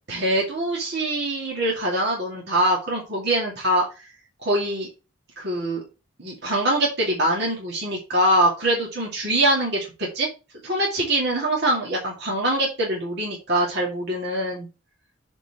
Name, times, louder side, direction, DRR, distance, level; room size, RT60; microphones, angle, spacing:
voice 1, 0.1-4.1 4.4-4.9 5.4-5.8 6.2-9.9 10.1-10.3 10.6-14.7, right 1 dB, 50° right, -3 dB, 2.4 m, -23 dB
6.7 x 4.5 x 4.2 m, 0.29 s
head